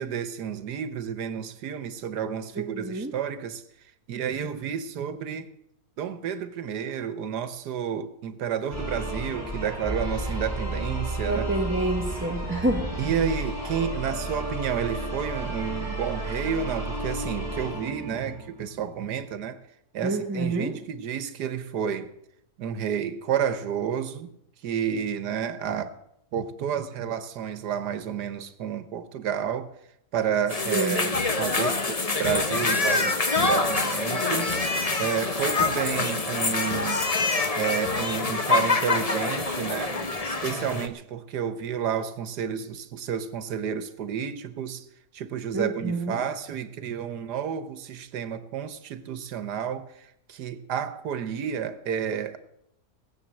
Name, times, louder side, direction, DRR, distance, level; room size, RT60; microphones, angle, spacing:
voice 1, 0.0-3.6 4.1-5.5 6.0-11.5 13.0-19.6 19.9-22.1 22.6-24.3 24.6-25.9 26.3-29.7 30.1-34.5 35.0-37.0 37.6-44.9 45.1-52.4, right 8 dB, 85° right, 1.6 m, -31 dB
voice 2, 2.6-3.1 11.3-12.9 20.0-20.8 30.7-31.1 45.5-46.1, right 2 dB, 10° right, 1.0 m, -28 dB
sound 1, 8.7-18.7, right 1 dB, 10° left, 4.6 m, -32 dB
sound 2, 30.5-40.9, left 3 dB, 25° left, 1.0 m, -25 dB
19.0 x 7.6 x 7.6 m
omnidirectional pair, 1.7 m